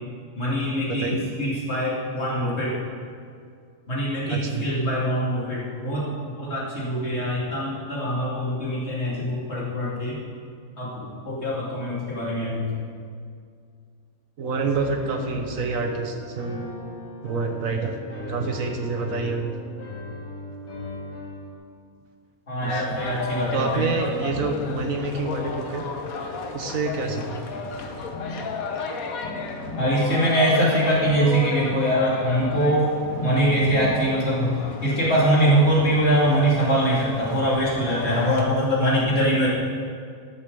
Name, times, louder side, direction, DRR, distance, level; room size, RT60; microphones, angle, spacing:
voice 1, 0.4-2.7 3.9-10.2 10.8-12.7 22.5-23.9 29.8-32.9 33.2-39.5, equal, 45° left, -6 dB, 3.1 m, -23 dB
voice 2, 4.3-4.6 4.9-5.0 14.4-16.6 17.2-18.0 18.3-19.5 22.6-23.0 23.5-25.8 26.5-27.4, right 4 dB, 65° right, 4 dB, 1.4 m, -27 dB
Piano, 14.7-21.5, left 2 dB, 90° left, 2.9 m, -38 dB
sound 1, 22.6-38.4, left 4 dB, 75° left, 1.5 m, -33 dB
12.5 x 6.7 x 6.8 m, 2.2 s
omnidirectional pair, 1.5 m